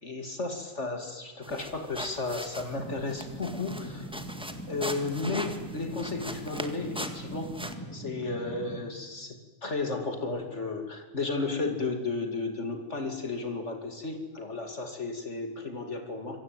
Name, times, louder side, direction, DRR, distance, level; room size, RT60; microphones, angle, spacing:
voice 1, 0.0-4.1 4.7-7.6 7.9-16.4, left 3 dB, 60° left, 5 dB, 2.8 m, -33 dB
sound 1, 1.4-7.7, equal, 5° right, 1.7 m, -41 dB
sound 2, 2.7-8.8, equal, 10° left, 3.1 m, -41 dB
26.5 x 23.0 x 9.2 m, 1.2 s
omnidirectional pair, 1.4 m